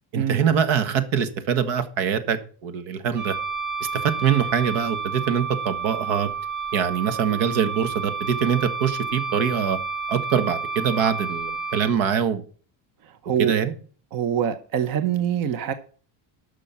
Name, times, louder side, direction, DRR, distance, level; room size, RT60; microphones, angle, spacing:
voice 1, 0.1-3.4 4.0-6.3 6.7-9.8 10.1-12.4 13.4-13.7, right 8 dB, 85° right, 1.8 m, -23 dB
Wind instrument woodwind instrument, 3.1-11.9, right 5 dB, 20° right, 1.6 m, -30 dB
voice 2, 14.1-15.7, right 9 dB, 50° right, 0.9 m, -24 dB
12.5 x 6.2 x 6.0 m
cardioid pair, 180°, 45 cm